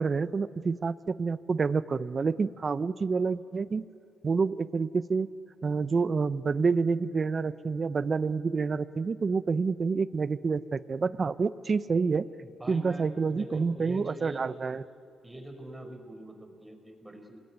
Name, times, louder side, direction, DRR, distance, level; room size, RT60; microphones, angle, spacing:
voice 1, 0.0-3.8 4.2-5.3 5.6-12.3 12.7-14.8, right 4 dB, 40° right, 16 dB, 0.7 m, -28 dB
voice 2, 12.4-14.5 15.2-17.4, right 1 dB, 10° right, 5 dB, 4.6 m, -44 dB
27.5 x 20.0 x 9.7 m, 2.5 s
cardioid pair, 75°, 0 cm